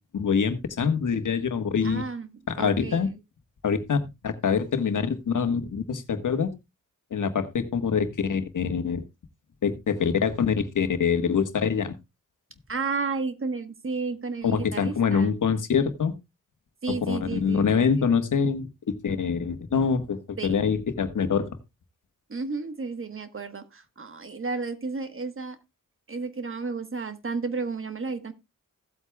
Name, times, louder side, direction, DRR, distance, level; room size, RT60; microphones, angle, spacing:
voice 1, 0.1-2.0 2.6-3.1 3.6-6.5 7.1-9.0 9.6-12.0 14.4-16.1 17.0-18.7 19.0-21.5, left 6 dB, 70° left, 8 dB, 1.4 m, -25 dB
voice 2, 1.8-2.3 2.6-3.1 12.7-15.4 16.8-18.0 20.4-20.6 22.3-25.6 26.1-28.3, right 4 dB, 40° right, 10 dB, 1.3 m, -32 dB
16.0 x 8.2 x 2.3 m, 0.22 s
cardioid pair, 70°, 32 cm